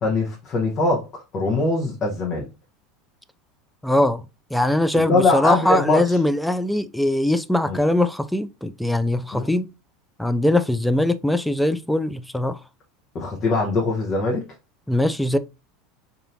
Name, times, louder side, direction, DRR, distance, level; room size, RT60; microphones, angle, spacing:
voice 1, 0.0-2.4 4.9-6.2 7.6-7.8 9.3-9.5 13.1-14.4, left 3 dB, 40° left, 1.0 m, -22 dB
voice 2, 3.8-4.2 4.5-9.7 10.2-12.6 14.9-15.4, left 1 dB, ahead, 0.3 m, -21 dB
4.2 x 2.7 x 2.6 m
hypercardioid pair, 80°, 0 cm